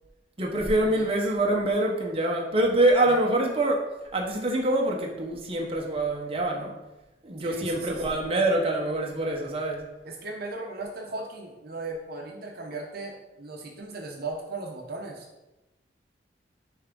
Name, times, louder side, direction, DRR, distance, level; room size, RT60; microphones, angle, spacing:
voice 1, 0.4-3.8 4.1-6.7 7.2-9.8, right 1 dB, 30° right, -1 dB, 1.0 m, -25 dB
voice 2, 7.4-8.2 10.0-15.3, right 2 dB, 55° right, 0 dB, 0.9 m, -37 dB
10.5 x 3.5 x 3.8 m, 1.0 s
head